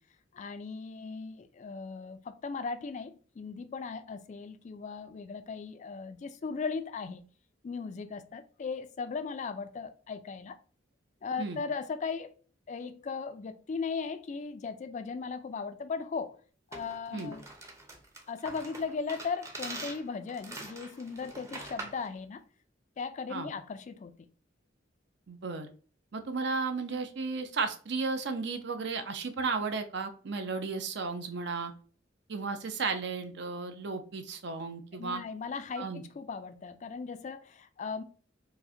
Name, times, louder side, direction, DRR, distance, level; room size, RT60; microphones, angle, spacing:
voice 1, 0.3-7.2 7.6-10.6 11.2-12.3 12.7-16.3 16.7-17.5 18.3-22.4 23.0-24.1 35.0-38.0, left 5 dB, 40° left, 0.3 m, -37 dB
sound 1, 16.7-22.1, right 2 dB, 15° right, 0.6 m, -44 dB
voice 2, 25.3-25.7 26.1-31.7 32.3-35.2 35.8-36.0, right 4 dB, 60° right, 0.6 m, -34 dB
4.8 x 2.1 x 2.7 m
head